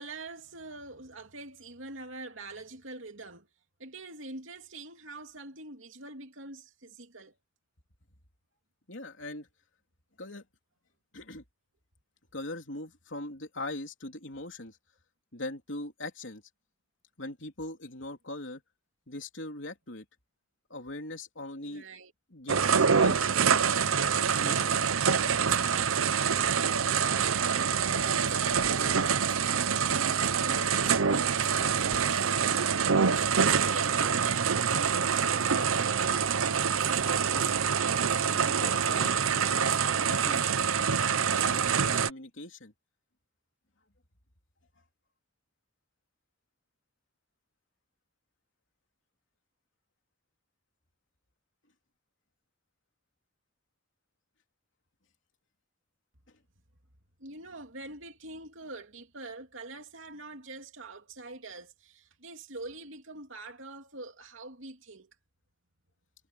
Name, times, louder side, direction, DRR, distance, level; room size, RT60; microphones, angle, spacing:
voice 1, 0.0-3.5 3.8-7.4 21.6-22.1 26.6-36.4 57.2-65.1, right 3 dB, 70° right, 3.0 m, -44 dB
voice 2, 8.9-9.5 10.2-10.5 11.1-11.4 12.3-14.8 15.3-16.4 17.2-18.6 19.1-20.1 20.7-21.9 22.3-23.6 24.2-24.9 38.3-42.7, left 2 dB, 60° left, 3.5 m, -41 dB
sound 1, 22.5-42.1, right 6 dB, 85° right, 0.8 m, -26 dB
sound 2, 26.9-27.2 27.7-29.6 31.2-33.3, right 3 dB, 20° right, 3.1 m, -51 dB
head